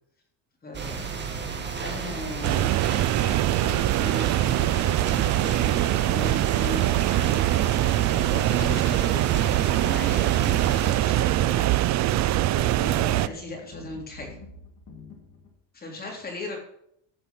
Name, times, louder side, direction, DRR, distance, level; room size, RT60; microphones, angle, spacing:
voice 1, 0.6-1.1 1.8-2.7 3.2-7.4 8.1-12.0 12.5-14.4 15.7-16.6, left 2 dB, 20° left, 0 dB, 3.4 m, -38 dB
sound 1, 0.7-11.0, right 6 dB, 25° right, 1.7 m, -33 dB
sound 2, 0.9-15.6, left 3 dB, 40° left, 3.0 m, -46 dB
sound 3, 2.4-13.3, right 15 dB, 40° right, 0.4 m, -23 dB
14.0 x 5.7 x 7.4 m, 0.72 s
cardioid pair, 155°, 46 cm